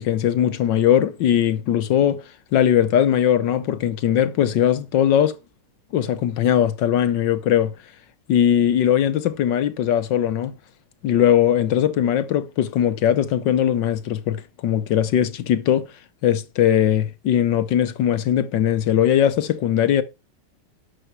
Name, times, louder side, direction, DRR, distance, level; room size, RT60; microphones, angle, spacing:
voice 1, 0.0-2.2 2.5-5.3 5.9-7.7 8.3-10.5 11.0-15.9 16.2-20.0, left 10 dB, 65° left, 1.4 m, -20 dB
11.5 x 6.9 x 4.6 m
omnidirectional pair, 2.4 m